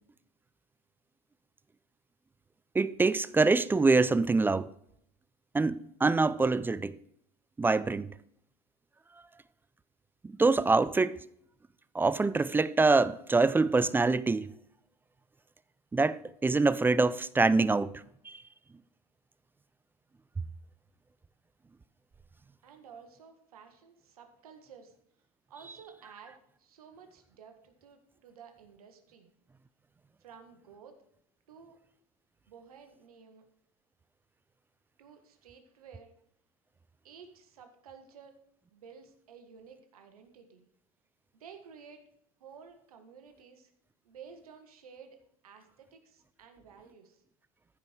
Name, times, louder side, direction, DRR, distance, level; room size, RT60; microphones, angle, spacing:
voice 1, 2.7-4.7 5.5-7.0 7.6-8.1 10.2-11.2 11.9-14.5 15.9-17.9 18.2-18.4, right 3 dB, 10° right, 0.4 m, -25 dB
voice 2, 22.6-24.9 25.5-29.3 30.2-31.0 31.5-31.8 32.5-33.5 35.0-36.1 37.0-38.4 38.7-40.7 41.3-42.0 42.4-43.7 44.0-47.2, right 6 dB, 90° right, 1.7 m, -53 dB
14.5 x 5.3 x 4.6 m
hypercardioid pair, 100°, 19 cm